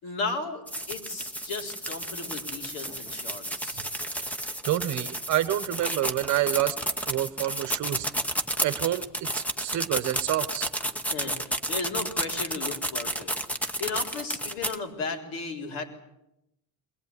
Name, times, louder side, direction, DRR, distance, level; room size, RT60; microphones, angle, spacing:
voice 1, 0.0-3.8 11.1-13.3 13.8-15.9, left 4 dB, 65° left, 3 dB, 4.1 m, -35 dB
sound 1, 0.7-14.8, right 1 dB, 5° left, 0.8 m, -31 dB
voice 2, 4.6-6.8 7.1-8.1 8.6-9.1 9.3-10.7, right 13 dB, 45° right, 13 dB, 1.1 m, -28 dB
21.5 x 20.0 x 9.7 m, 0.85 s
cardioid pair, 175°, 39 cm